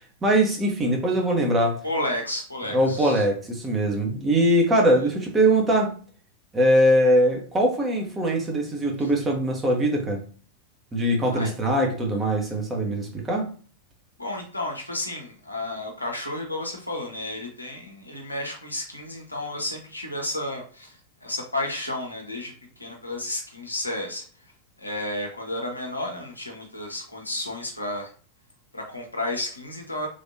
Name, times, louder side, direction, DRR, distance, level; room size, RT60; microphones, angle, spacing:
voice 1, 0.2-1.8 2.7-5.9 6.5-10.2 10.9-13.5, right 1 dB, 15° right, 0 dB, 0.9 m, -22 dB
voice 2, 1.8-3.2 9.0-9.1 11.3-11.5 14.2-24.2 24.8-28.1 28.7-30.1, left 1 dB, 85° left, 1 dB, 0.7 m, -32 dB
3.2 x 2.6 x 2.7 m, 0.42 s
figure-of-eight pair, 90°, 0 cm